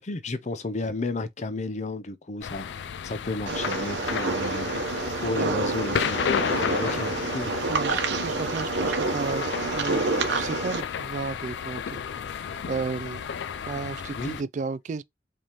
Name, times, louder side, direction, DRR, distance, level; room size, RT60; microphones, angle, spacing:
voice 1, 0.0-4.9 5.2-7.6 13.7-14.4, left 2 dB, 40° left, 0.6 m, -33 dB
sound 1, 2.4-14.4, left 7 dB, 80° left, 0.4 m, -32 dB
sound 2, 3.5-10.8, right 3 dB, 90° right, 1.0 m, -28 dB
voice 2, 5.4-5.8 7.6-9.5 9.7-10.0 10.3-12.0 12.7-13.3 13.7-15.0, right 4 dB, 45° right, 0.3 m, -33 dB
5.0 x 3.5 x 3.0 m
head